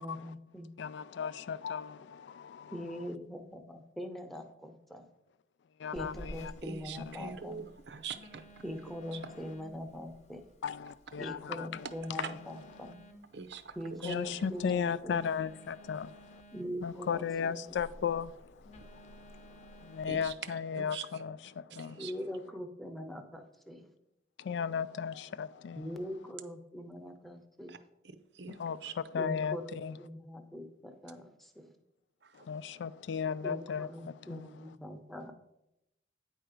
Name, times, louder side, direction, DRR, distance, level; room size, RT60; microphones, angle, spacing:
voice 1, 0.0-0.7 2.7-5.1 5.9-7.7 8.6-10.5 11.2-13.1 13.8-15.2 16.5-17.8 22.0-23.9 25.8-27.9 29.1-31.7 33.4-35.3, equal, ahead, 0.7 m, -42 dB
voice 2, 0.8-2.0 2.4-2.8 5.8-6.5 7.1-7.2 10.6-11.9 12.2-12.3 14.0-16.1 16.8-18.3 19.9-21.4 21.8-22.0 24.5-25.9 28.6-28.8 29.1-30.0 32.5-33.9 34.3-34.5, left 7 dB, 75° left, 0.3 m, -35 dB
Telephone, 6.0-20.3, equal, 40° left, 0.8 m, -54 dB
voice 3, 6.6-8.6 9.1-9.2 12.1-12.3 13.3-14.5 20.1-20.3 20.8-21.2 21.7-22.1 27.7-27.8 28.3-28.9 32.2-32.5, right 6 dB, 70° right, 0.6 m, -44 dB
9.2 x 4.4 x 5.1 m
head